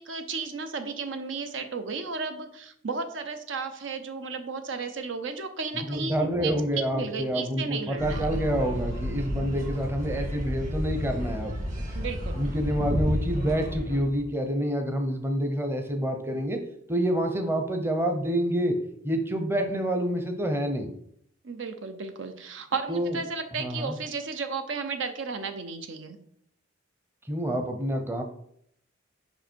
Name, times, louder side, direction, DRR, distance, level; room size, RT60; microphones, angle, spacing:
voice 1, 0.0-6.5 6.9-8.3 11.9-12.4 21.4-26.2, right 4 dB, 75° right, 8 dB, 0.7 m, -34 dB
voice 2, 5.8-11.6 12.4-16.6 16.9-18.8 19.0-20.9 22.9-23.2 23.6-23.9 27.3-28.2, equal, 10° right, 5 dB, 0.7 m, -27 dB
sound 1, 8.0-14.2, equal, 40° right, 2.3 m, -31 dB
5.4 x 5.1 x 4.4 m, 0.69 s
head